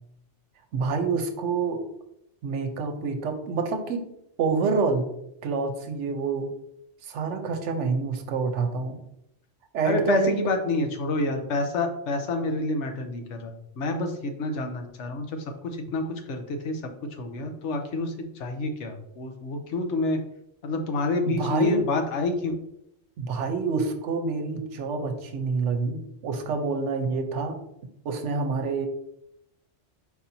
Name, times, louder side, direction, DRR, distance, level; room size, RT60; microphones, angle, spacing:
voice 1, 0.7-1.8 2.4-4.0 4.4-5.1 5.4-6.5 7.0-9.0 9.7-10.4 21.3-21.8 23.2-27.6 28.0-28.9, right 4 dB, 80° right, 6 dB, 1.0 m, -27 dB
voice 2, 9.8-15.4 15.6-16.8 17.2-20.2 20.6-22.5, left 2 dB, 75° left, 5 dB, 1.0 m, -28 dB
4.7 x 4.2 x 2.6 m, 0.78 s
omnidirectional pair, 1.2 m